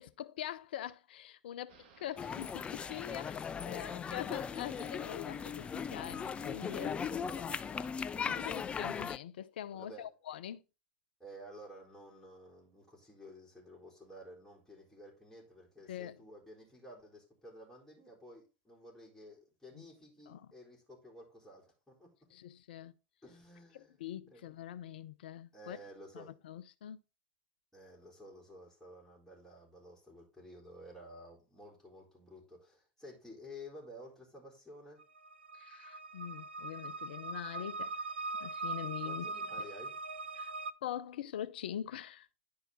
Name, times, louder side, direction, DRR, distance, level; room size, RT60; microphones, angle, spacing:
voice 1, 0.0-6.9 7.8-7.9 8.3-10.6 15.9-16.2 19.7-19.8 20.3-20.5 22.3-22.9 23.7-25.8 26.1-27.0 35.5-37.9 38.4-39.3 39.6-39.7 40.4-40.5 40.8-42.3, left 11 dB, 65° left, 0.6 m, -43 dB
sound 1, 1.7-7.9, right 6 dB, 55° right, 1.7 m, -62 dB
sound 2, 2.2-9.2, left 6 dB, 20° left, 0.4 m, -38 dB
voice 2, 3.4-4.2 6.9-7.4 8.1-8.8 9.7-10.1 11.2-22.1 23.2-24.5 25.5-26.3 27.7-35.0 39.0-40.0, equal, 5° left, 3.7 m, -53 dB
sound 3, 35.0-40.7, right 3 dB, 80° right, 0.4 m, -41 dB
10.5 x 4.5 x 3.6 m
figure-of-eight pair, 90°, 6 cm